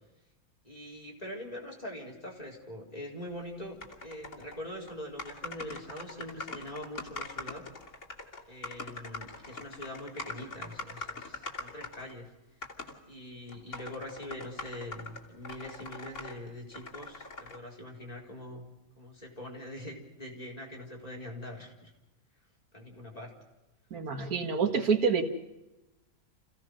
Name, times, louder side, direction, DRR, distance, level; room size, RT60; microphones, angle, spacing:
voice 1, 0.6-7.7 8.5-12.3 13.1-21.9 22.7-23.3, left 1 dB, 25° left, 0 dB, 4.4 m, -43 dB
sound 1, 3.8-4.6 4.9-5.0 5.2-12.1 12.6-13.0 13.5-16.4 16.7-17.6, left 3 dB, 55° left, 3.3 m, -42 dB
voice 2, 23.9-25.2, right 5 dB, 80° right, 6 dB, 2.2 m, -27 dB
28.5 x 16.0 x 6.4 m, 1.0 s
omnidirectional pair, 1.5 m